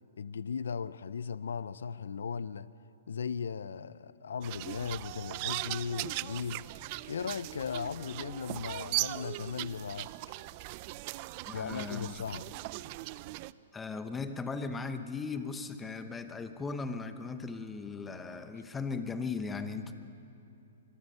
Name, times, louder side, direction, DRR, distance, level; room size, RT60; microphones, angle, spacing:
voice 1, 0.2-2.7 3.1-6.7 7.1-10.1 11.5-12.4, left 6 dB, 85° left, 17 dB, 0.6 m, -37 dB
sound 1, 4.4-13.5, right 19 dB, 40° right, 0.4 m, -39 dB
voice 2, 11.5-12.1 13.7-19.9, left 4 dB, 10° left, 9 dB, 1.0 m, -37 dB
25.0 x 22.5 x 5.7 m, 2.8 s
hypercardioid pair, 150°, 0 cm